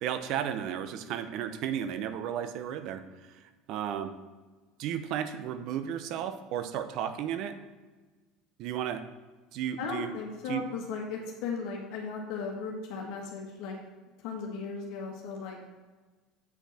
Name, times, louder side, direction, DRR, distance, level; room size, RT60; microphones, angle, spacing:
voice 1, 0.0-3.0 3.7-4.1 4.8-7.6 8.6-9.0 9.5-10.1 10.5-10.6, right 9 dB, 60° right, 10 dB, 0.7 m, -33 dB
voice 2, 9.8-13.8 14.2-15.6, left 5 dB, 65° left, -1 dB, 1.5 m, -36 dB
8.1 x 6.0 x 4.2 m, 1.3 s
hypercardioid pair, 85°, 0 cm